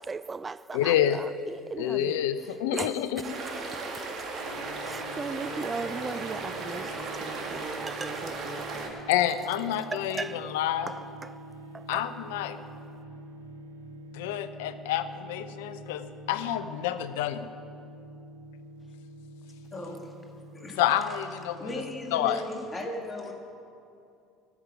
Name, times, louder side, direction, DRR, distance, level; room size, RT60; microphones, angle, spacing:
voice 1, 0.0-2.2 2.7-3.0 4.8-9.0 9.9-10.4 10.9-11.4 11.7-12.0, right 4 dB, 25° right, 0.3 m, -37 dB
voice 2, 0.7-1.2 1.8-3.5 9.1-10.9 11.9-12.6 14.1-17.5 20.8-21.8 22.1-22.4, left 11 dB, 70° left, 0.4 m, -28 dB
sound 1, 3.2-8.9, right 3 dB, 45° right, 2.0 m, -36 dB
sound 2, 4.4-22.2, right 1 dB, 85° right, 1.2 m, -46 dB
voice 3, 19.7-20.1 20.5-20.8 21.6-23.3, left 1 dB, 20° left, 1.7 m, -36 dB
13.5 x 6.1 x 9.8 m
figure-of-eight pair, 60°, 0 cm